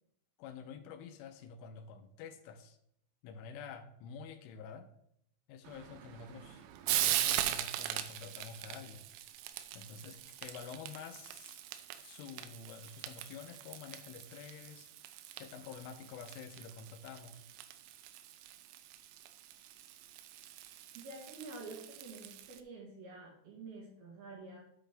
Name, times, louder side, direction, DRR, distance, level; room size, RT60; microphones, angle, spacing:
voice 1, 0.4-2.8 3.2-4.9 5.5-6.7 7.0-9.0 9.7-11.6 12.0-14.9 15.4-17.4, left 6 dB, 80° left, 8 dB, 3.1 m, -49 dB
Frying (food), 5.6-22.6, right 12 dB, 85° right, 3.3 m, -41 dB
voice 2, 20.9-24.6, right 3 dB, 65° right, -1 dB, 2.9 m, -48 dB
9.3 x 8.0 x 3.4 m, 0.72 s
omnidirectional pair, 5.8 m